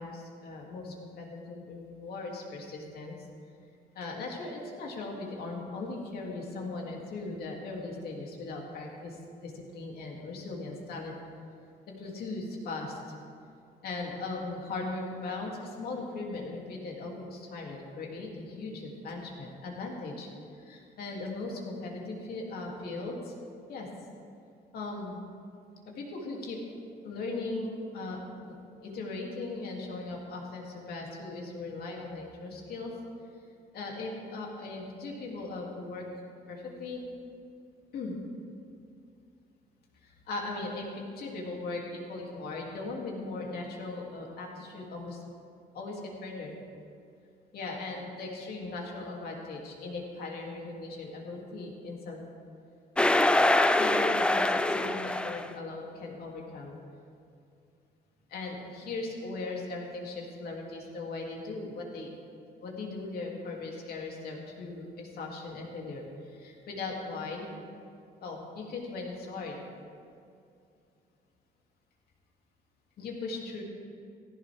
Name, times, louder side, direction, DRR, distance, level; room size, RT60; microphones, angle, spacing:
voice 1, 0.0-3.1 3.9-11.1 11.9-13.0 13.8-20.3 20.6-23.3 23.7-23.9 24.7-25.2 25.9-26.8 27.0-32.9 33.7-36.1 36.5-37.0 37.9-38.1 40.0-45.2 45.7-46.5 47.5-52.2 53.0-53.3 53.8-56.7 58.3-62.1 62.6-67.5 68.2-69.6 73.0-73.6, left 3 dB, 65° left, -1 dB, 2.7 m, -38 dB
sound 1, 53.0-55.5, left 2 dB, 5° left, 0.3 m, -24 dB
16.5 x 15.5 x 3.5 m, 2.5 s
cardioid pair, 165°, 17 cm